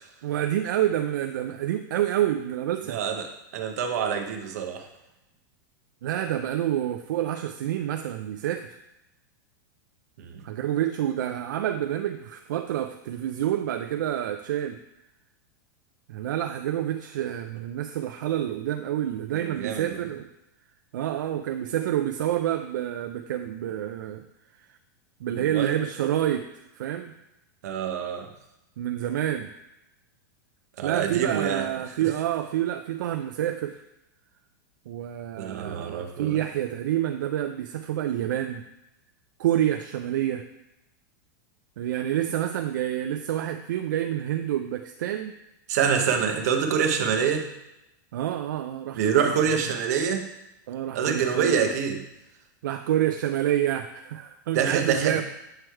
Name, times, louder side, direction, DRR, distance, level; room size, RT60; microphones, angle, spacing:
voice 1, 0.2-3.0 6.0-8.8 10.4-14.8 16.1-20.3 20.9-24.2 25.2-26.5 26.7-27.1 28.8-29.5 30.8-33.8 34.9-38.6 39.4-40.4 41.8-45.4 48.1-49.7 50.7-51.7 52.6-55.2, right 11 dB, 70° right, 7 dB, 0.4 m, -28 dB
voice 2, 2.9-4.9 10.2-10.4 19.3-20.0 25.3-25.8 27.6-28.3 30.8-31.6 35.4-36.4 45.7-47.5 48.9-50.3 50.9-52.0 54.5-55.2, right 7 dB, 50° right, 5 dB, 0.8 m, -26 dB
7.6 x 3.2 x 4.5 m, 0.89 s
supercardioid pair, 180°, 11 cm